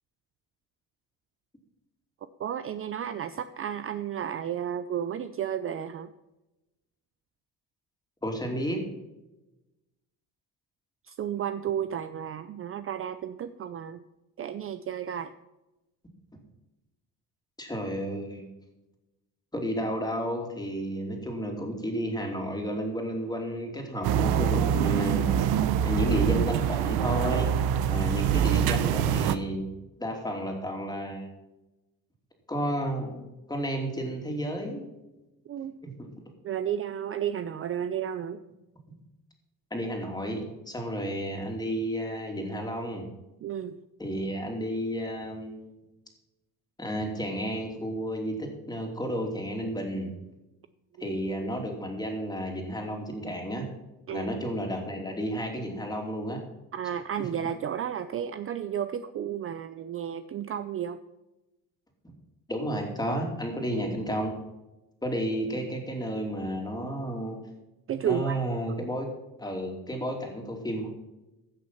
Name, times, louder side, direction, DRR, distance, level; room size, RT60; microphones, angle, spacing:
voice 1, 2.4-6.1 11.0-14.0 14.4-15.3 35.5-35.8 36.4-38.4 43.4-43.8 51.0-51.2 54.1-54.3 56.7-61.0 67.9-68.4, right 9 dB, 40° right, 12 dB, 0.5 m, -32 dB
voice 2, 8.2-8.8 17.6-18.5 19.5-25.5 25.8-27.5 27.9-29.7 30.0-31.3 32.5-34.9 35.8-36.1 39.7-43.0 44.0-45.8 46.8-50.1 51.0-53.6 54.1-56.4 62.5-64.3 65.0-67.4 68.1-69.1 69.4-70.9, equal, 10° left, 2 dB, 2.9 m, -32 dB
sound 1, 24.0-29.4, right 9 dB, 85° right, 0.8 m, -25 dB
15.5 x 6.3 x 5.7 m, 1.0 s
cardioid pair, 115°, 36 cm